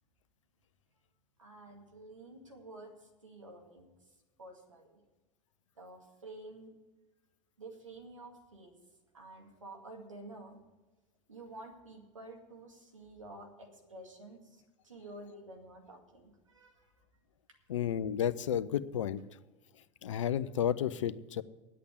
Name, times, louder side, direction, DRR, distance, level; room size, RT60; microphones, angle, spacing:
voice 1, 1.4-3.9 4.4-5.0 5.8-6.7 7.6-8.8 9.1-10.6 11.3-16.9 17.5-17.6, right 2 dB, 90° right, 2 dB, 2.2 m, -50 dB
voice 2, 17.7-19.2 20.0-21.4, left 9 dB, 80° left, 16 dB, 0.6 m, -32 dB
10.0 x 8.4 x 8.2 m, 1.1 s
hypercardioid pair, 85°, 16 cm